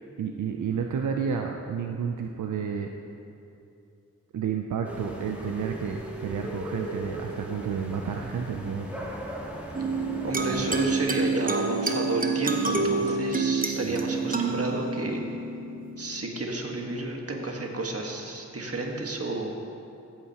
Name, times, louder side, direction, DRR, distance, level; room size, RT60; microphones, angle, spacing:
voice 1, 0.2-2.9 4.3-9.0 13.8-14.0, right 6 dB, 85° right, 3 dB, 0.5 m, -31 dB
sound 1, 4.8-11.0, equal, 5° right, 2.4 m, -38 dB
sound 2, 9.7-16.7, right 4 dB, 30° right, 1.0 m, -28 dB
voice 2, 10.2-15.2 16.0-19.6, right 2 dB, 50° right, 1 dB, 1.5 m, -31 dB
15.0 x 8.6 x 2.9 m, 2.7 s
cardioid pair, 45°, 30 cm